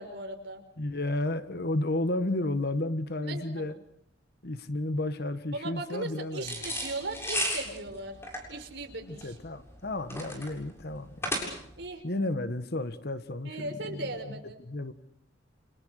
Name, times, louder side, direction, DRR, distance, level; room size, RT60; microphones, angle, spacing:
voice 1, 0.0-0.6 3.2-3.7 5.5-8.2 8.5-9.4 11.8-12.0 13.4-14.6, right 2 dB, 65° right, 4 dB, 5.4 m, -38 dB
voice 2, 0.8-3.8 4.4-6.6 9.1-11.3 12.0-14.4 14.7-14.9, left 1 dB, 55° left, 12 dB, 1.5 m, -32 dB
sound 1, 6.4-11.8, equal, 15° left, 7.5 m, -34 dB
30.0 x 28.5 x 6.5 m, 0.64 s
head